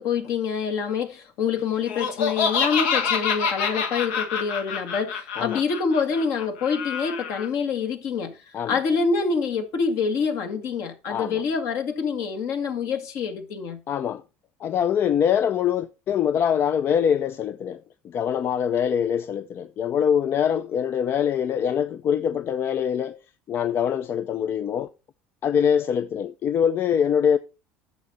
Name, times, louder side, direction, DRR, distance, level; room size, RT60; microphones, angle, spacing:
voice 1, 0.0-13.8, left 5 dB, 60° left, 1.9 m, -26 dB
Laughter, 1.9-7.5, left 6 dB, 80° left, 1.6 m, -27 dB
voice 2, 11.1-11.4 13.9-14.2 14.6-23.2 23.5-24.9 25.4-27.4, left 8 dB, 45° left, 0.5 m, -24 dB
9.3 x 6.7 x 4.2 m
supercardioid pair, 90°, 6 cm